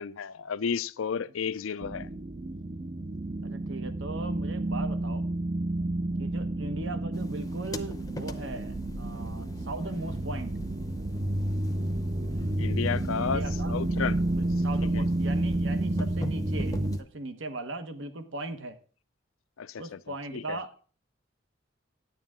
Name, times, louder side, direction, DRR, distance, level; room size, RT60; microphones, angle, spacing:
voice 1, 0.0-2.1 12.6-14.2 14.9-15.0 19.6-20.6, left 6 dB, 85° left, 0.5 m, -32 dB
sound 1, 1.8-17.0, right 1 dB, 30° right, 0.5 m, -30 dB
voice 2, 3.4-5.3 6.2-10.6 13.2-13.7 14.3-18.8 19.7-20.8, right 2 dB, 70° right, 1.1 m, -39 dB
sound 2, 7.1-17.0, left 1 dB, 15° left, 0.6 m, -42 dB
10.0 x 9.0 x 3.6 m
head